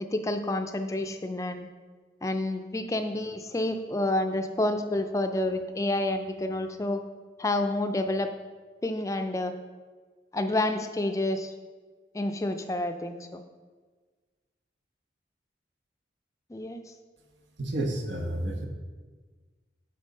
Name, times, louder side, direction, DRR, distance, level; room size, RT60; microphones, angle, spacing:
voice 1, 0.1-1.7 2.2-7.0 7.4-8.3 8.8-9.5 10.3-11.5 12.1-13.4 16.5-16.8, left 1 dB, 15° left, 7 dB, 0.3 m, -29 dB
voice 2, 17.6-18.7, right 1 dB, 85° right, 2 dB, 1.1 m, -30 dB
8.9 x 3.9 x 5.4 m, 1.4 s
head